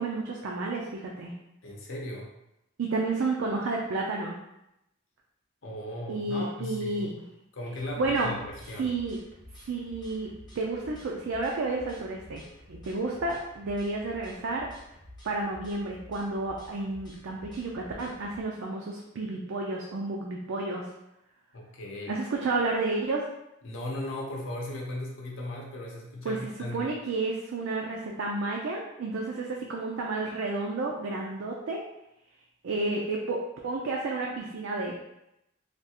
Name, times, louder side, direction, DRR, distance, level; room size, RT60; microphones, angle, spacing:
voice 1, 0.0-1.3 2.8-4.3 6.1-7.1 8.0-8.3 8.8-9.2 9.7-10.3 10.6-12.4 12.7-14.7 15.2-20.9 22.1-23.2 26.2-26.4 26.7-31.8 32.6-33.4 33.6-34.9, right 3 dB, 70° right, -1 dB, 0.4 m, -31 dB
voice 2, 1.6-2.3 5.6-7.1 7.5-8.9 21.5-22.4 23.6-26.9, left 1 dB, 65° left, -1 dB, 0.7 m, -37 dB
sound 1, 7.7-18.4, left 1 dB, 20° left, 0.8 m, -51 dB
3.3 x 2.3 x 2.8 m, 0.86 s
head